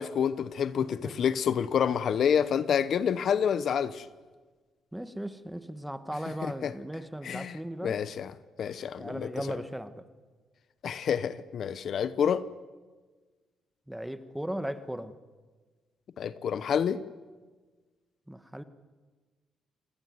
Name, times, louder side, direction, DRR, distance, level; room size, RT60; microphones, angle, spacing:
voice 1, 0.0-4.0 6.6-6.7 7.2-7.6 7.8-8.3 8.6-9.3 10.8-12.5 16.2-17.0, left 8 dB, 60° left, 1.0 m, -28 dB
voice 2, 4.9-8.0 9.0-10.1 13.9-15.1 18.3-18.6, right 1 dB, 5° right, 1.7 m, -37 dB
27.5 x 19.5 x 9.6 m
cardioid pair, 90°, 0 cm